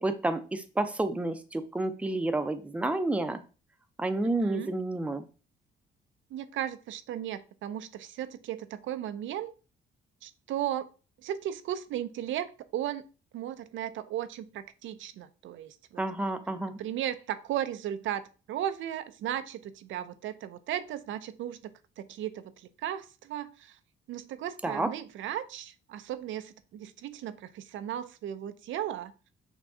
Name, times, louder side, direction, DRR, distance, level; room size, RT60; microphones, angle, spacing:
voice 1, 0.0-3.4 4.0-5.2 16.0-16.8 24.6-24.9, right 2 dB, 5° right, 9 dB, 0.5 m, -30 dB
voice 2, 4.2-4.7 6.3-9.5 10.2-10.9 11.2-13.0 13.3-16.0 16.8-18.2 18.5-21.7 22.0-23.8 24.1-29.1, right 11 dB, 75° right, 11 dB, 0.5 m, -36 dB
6.0 x 2.2 x 3.6 m, 0.34 s
cardioid pair, 90°, 20 cm